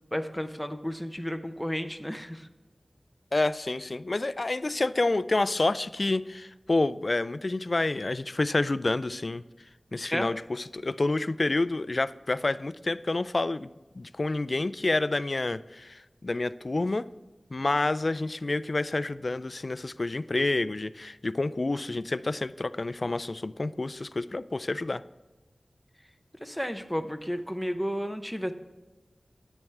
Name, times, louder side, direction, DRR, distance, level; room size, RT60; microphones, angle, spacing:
voice 1, 0.1-2.5 10.1-10.3 26.4-28.5, equal, ahead, 7 dB, 0.7 m, -32 dB
voice 2, 3.3-9.4 9.9-13.7 14.0-17.1 17.5-25.0, left 2 dB, 50° left, 15 dB, 0.3 m, -28 dB
10.5 x 8.2 x 3.3 m, 1.1 s
wide cardioid pair, 65°, 0 cm